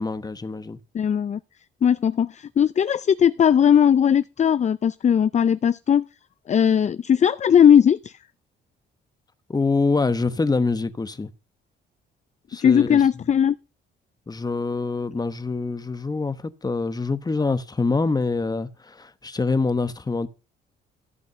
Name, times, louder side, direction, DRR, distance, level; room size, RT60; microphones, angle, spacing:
voice 1, 0.0-0.8 9.5-11.3 12.5-13.3 14.3-20.3, left 3 dB, 20° left, 1.1 m, -25 dB
voice 2, 0.9-1.4 1.8-6.0 6.5-8.1 12.6-13.5, left 8 dB, 35° left, 0.5 m, -18 dB
14.0 x 5.3 x 6.8 m
cardioid pair, 90°, 20 cm